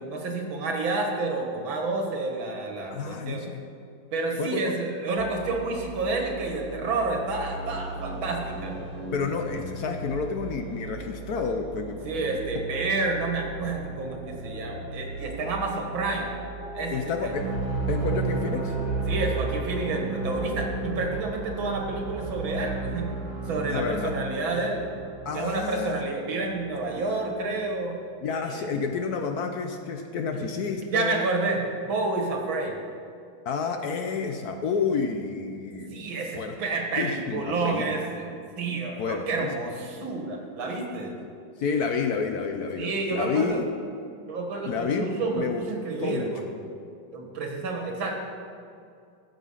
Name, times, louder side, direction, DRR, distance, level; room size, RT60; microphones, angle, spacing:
voice 1, 0.0-3.4 4.1-8.8 12.0-16.4 16.7-17.3 19.1-23.1 23.5-24.9 25.3-28.0 28.4-28.7 30.4-30.5 30.9-32.7 35.9-38.3 38.6-41.2 42.8-43.6 44.3-46.4 47.1-48.2, right 3 dB, 85° right, 2 dB, 2.3 m, -29 dB
voice 2, 2.9-3.6 4.4-4.7 9.1-12.2 16.9-17.6 17.9-18.7 23.7-24.1 25.2-26.2 28.2-31.2 33.4-36.6 37.0-38.0 39.0-39.5 41.1-41.3 41.6-43.7 44.7-45.7 46.0-46.3, left 5 dB, 65° left, 5 dB, 1.0 m, -30 dB
sound 1, 5.2-22.6, right 2 dB, 5° right, 2.2 m, -38 dB
sound 2, 17.2-27.3, right 4 dB, 60° right, 1.5 m, -33 dB
14.5 x 7.1 x 5.6 m, 2.4 s
omnidirectional pair, 2.1 m